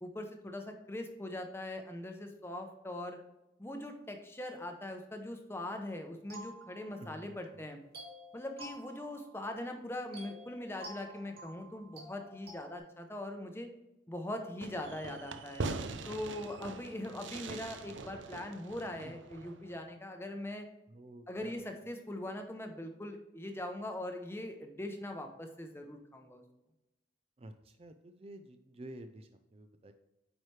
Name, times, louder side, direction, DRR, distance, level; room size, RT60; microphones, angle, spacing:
voice 1, 0.0-3.2 3.6-7.8 8.3-13.7 14.1-15.6 16.1-20.7 21.3-26.4, left 1 dB, 10° left, 5 dB, 0.7 m, -41 dB
sound 1, 6.3-7.4 7.9-9.7 10.1-12.8, right 1 dB, 55° right, 2.2 m, -51 dB
voice 2, 7.0-7.7 19.0-19.1 20.9-21.7 27.4-29.9, right 1 dB, 30° right, 7 dB, 0.4 m, -51 dB
Fireworks, 14.6-19.8, right 3 dB, 75° right, 0.6 m, -42 dB
8.7 x 4.8 x 3.2 m, 0.95 s
head